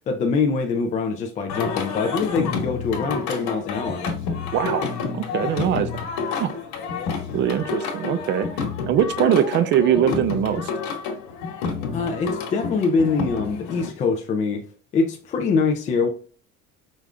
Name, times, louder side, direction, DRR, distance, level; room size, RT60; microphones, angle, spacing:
voice 1, 0.0-4.0 11.9-14.6 14.9-16.1, left 4 dB, 25° left, 0.4 m, -24 dB
Singing, 1.5-13.9, left 5 dB, 75° left, 1.3 m, -29 dB
voice 2, 4.5-6.0 6.4-6.5 7.3-8.5 8.9-10.7, right 9 dB, 40° right, 0.4 m, -22 dB
5.1 x 2.4 x 3.2 m
cardioid pair, 180°, 29 cm